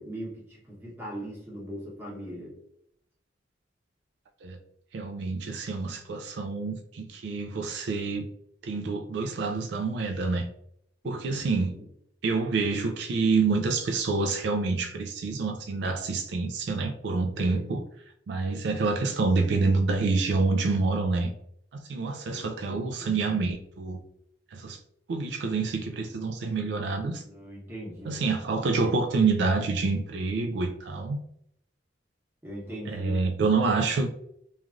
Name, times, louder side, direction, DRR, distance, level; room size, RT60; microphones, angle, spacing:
voice 1, 0.0-2.6 11.0-11.9 17.3-17.6 22.3-23.2 27.2-28.2 32.4-33.2, right 1 dB, 10° right, 1.0 m, -40 dB
voice 2, 4.9-8.3 8.6-10.5 11.0-11.8 12.2-17.8 18.3-21.3 21.7-24.0 24.5-24.8 25.1-27.2 28.0-31.2 32.9-34.1, right 4 dB, 70° right, 0.3 m, -27 dB
3.1 x 2.4 x 2.4 m
head